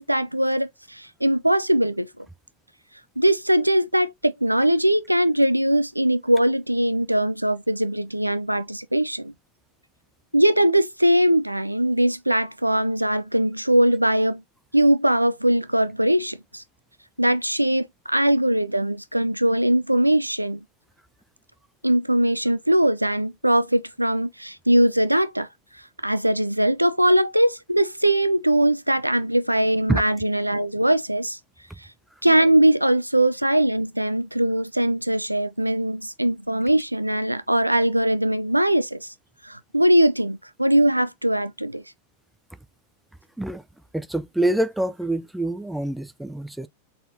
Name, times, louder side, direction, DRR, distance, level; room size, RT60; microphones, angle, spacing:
voice 1, 0.0-2.3 3.2-9.3 10.3-14.4 14.7-16.6 17.2-20.6 21.8-25.5 26.0-31.4 32.2-39.1 39.4-41.8, right 1 dB, 85° right, 0.3 m, -21 dB
voice 2, 43.9-46.7, right 1 dB, 5° right, 0.4 m, -25 dB
3.9 x 3.8 x 2.6 m
figure-of-eight pair, 90°, 0 cm